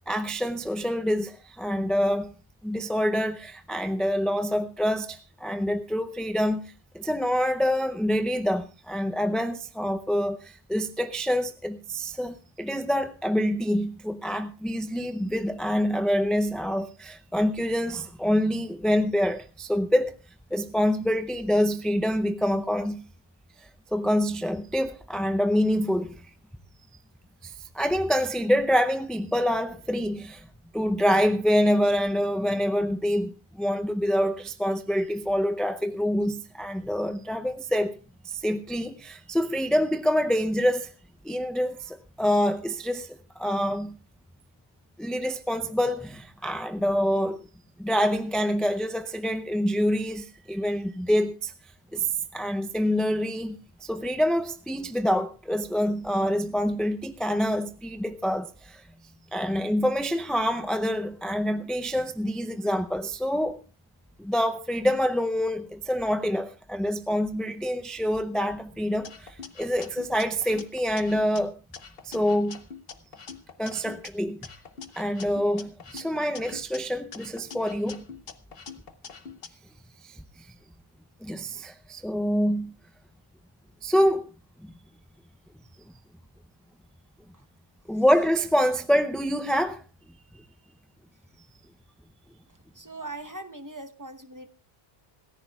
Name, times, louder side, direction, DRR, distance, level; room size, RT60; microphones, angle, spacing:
voice 1, 0.1-2.3 2.6-6.6 6.9-20.1 20.5-23.0 23.9-26.3 27.4-30.4 30.7-38.0 38.2-40.9 41.2-44.0 45.0-47.4 47.8-51.5 51.9-52.1 52.3-58.8 59.3-63.6 64.2-71.5 72.0-72.6 73.6-74.4 75.0-78.0 80.0-80.2 81.2-82.7 83.8-84.3 84.6-84.7 87.9-89.8, equal, ahead, 0.4 m, -26 dB
sound 1, 69.0-71.4 71.7-74.1 74.4-76.8 77.1-79.5, left 6 dB, 70° left, 1.2 m, -44 dB
voice 2, 92.7-94.5, right 2 dB, 20° right, 0.9 m, -40 dB
26.5 x 14.5 x 2.3 m
omnidirectional pair, 1.0 m